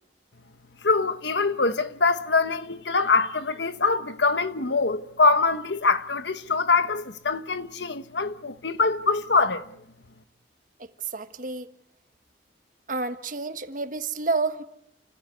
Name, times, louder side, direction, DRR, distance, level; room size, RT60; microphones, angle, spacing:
voice 1, 0.8-9.6, left 4 dB, 70° left, 1.2 m, -24 dB
voice 2, 10.8-11.7 12.9-14.6, right 3 dB, 45° right, 1.4 m, -29 dB
29.5 x 15.0 x 9.5 m
head